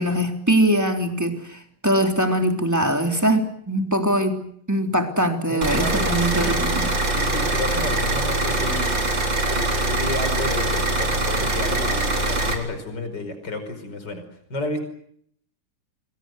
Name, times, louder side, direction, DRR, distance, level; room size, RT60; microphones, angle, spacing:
voice 1, 0.0-4.4 4.7-6.9, right 1 dB, 5° right, 4 dB, 3.1 m, -22 dB
voice 2, 5.5-6.6 7.1-9.2 9.5-14.2 14.5-14.8, left 2 dB, 30° left, 9 dB, 5.6 m, -31 dB
sound 1, 5.6-12.5, right 2 dB, 35° right, 4.4 m, -23 dB
29.0 x 21.5 x 8.0 m, 0.67 s
omnidirectional pair, 3.7 m